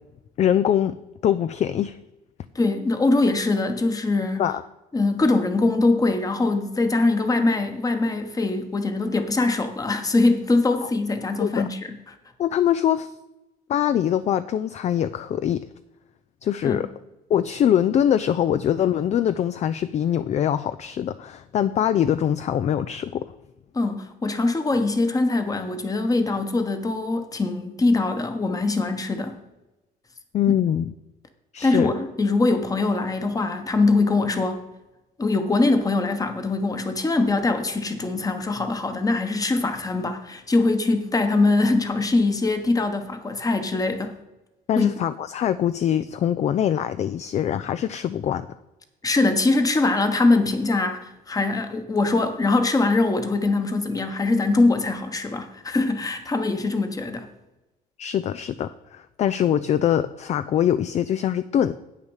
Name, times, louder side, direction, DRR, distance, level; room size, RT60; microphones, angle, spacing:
voice 1, 0.4-1.0 1.2-2.0 4.4-4.6 10.8-10.9 11.4-11.7 12.4-13.1 13.7-15.6 16.4-16.9 17.3-23.3 30.3-30.9 31.5-31.9 44.7-48.5 58.0-61.7, left 10 dB, 40° left, 0.4 m, -23 dB
voice 2, 2.5-4.4 4.9-11.8 16.6-16.9 23.7-29.4 31.6-34.6 35.2-44.2 44.8-44.9 49.0-57.3, left 3 dB, 20° left, 1.2 m, -22 dB
8.5 x 6.5 x 6.4 m
cardioid pair, 110°, 17 cm